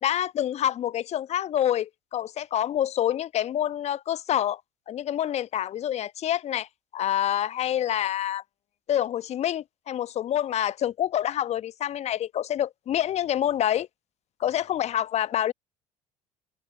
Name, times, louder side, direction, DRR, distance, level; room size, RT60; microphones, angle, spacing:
voice 1, 0.0-4.6 4.9-6.7 6.9-8.4 8.9-13.9 14.4-15.5, left 11 dB, 40° left, 1.1 m, -27 dB
figure-of-eight pair, 60°, 17 cm